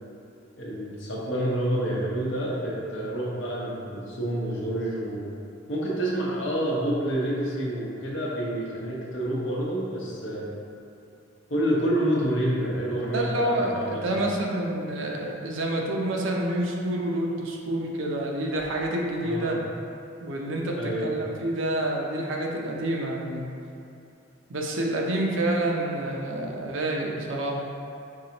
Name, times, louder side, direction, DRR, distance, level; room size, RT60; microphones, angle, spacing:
voice 1, 0.6-5.3 5.7-10.4 11.5-14.2 19.2-19.5 20.8-21.1, right 1 dB, 65° left, -5 dB, 1.0 m, -28 dB
voice 2, 13.1-19.6 20.2-23.5 24.5-27.6, right 1 dB, 70° right, -1 dB, 0.6 m, -28 dB
4.7 x 3.9 x 2.9 m, 2.7 s
head